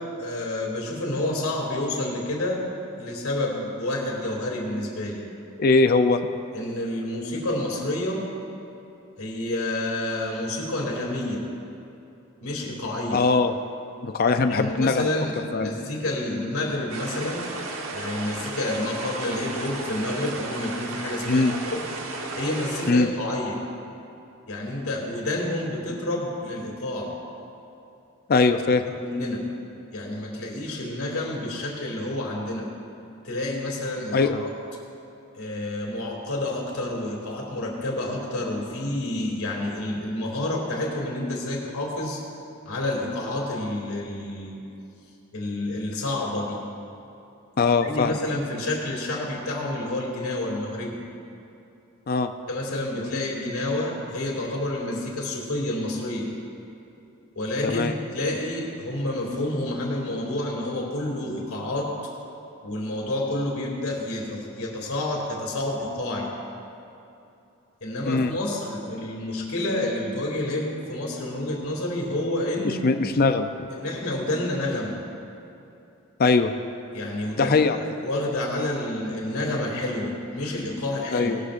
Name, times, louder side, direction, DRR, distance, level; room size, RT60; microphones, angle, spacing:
voice 1, 0.0-2.7 2.9-5.2 6.5-8.3 9.2-11.5 12.4-13.2 14.5-17.5 17.9-23.6 24.5-27.2 28.9-29.5 29.9-32.7 33.2-34.5 35.3-42.2 42.6-44.6 45.3-46.6 47.8-51.0 52.5-56.3 57.3-62.0 62.6-66.3 67.8-72.8 73.7-75.0 76.9-81.3, left 1 dB, 90° left, -1 dB, 2.6 m, -29 dB
voice 2, 5.6-6.2 13.1-13.5 14.0-15.3 15.5-15.7 21.3-21.5 22.9-23.1 28.3-28.8 34.1-34.4 47.6-48.2 52.1-52.3 57.6-57.9 68.0-68.3 72.6-73.7 76.2-76.5 77.4-77.8 81.1-81.4, left 3 dB, 45° left, 8 dB, 0.5 m, -21 dB
sound 1, 16.9-22.9, right 3 dB, 75° right, 1.1 m, -34 dB
19.0 x 12.5 x 2.5 m, 2.8 s
head